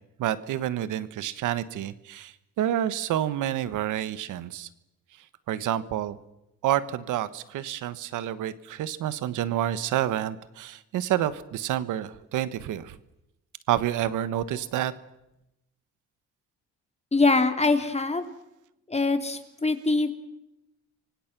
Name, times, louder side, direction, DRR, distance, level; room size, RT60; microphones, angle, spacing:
voice 1, 0.2-4.7 5.5-6.2 6.6-13.0 13.7-14.9, right 12 dB, 85° right, 15 dB, 1.3 m, -28 dB
voice 2, 17.1-18.2 18.9-20.1, left 3 dB, 20° left, 7 dB, 3.0 m, -23 dB
29.5 x 24.5 x 6.0 m, 0.89 s
cardioid pair, 90°, 30 cm